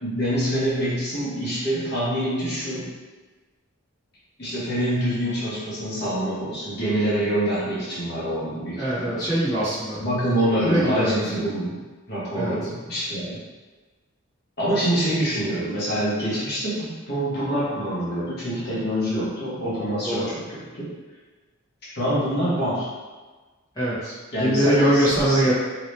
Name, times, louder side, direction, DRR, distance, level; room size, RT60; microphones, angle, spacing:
voice 1, 0.0-2.9 4.4-9.2 10.0-11.7 12.1-13.4 14.6-20.9 22.0-22.9 24.3-25.5, equal, 50° left, -9 dB, 1.1 m, -26 dB
voice 2, 8.8-10.0 10.6-11.2 12.4-12.6 20.0-20.3 23.7-25.5, right 1 dB, 15° left, -13 dB, 1.1 m, -22 dB
2.9 x 2.9 x 3.2 m, 1.3 s
head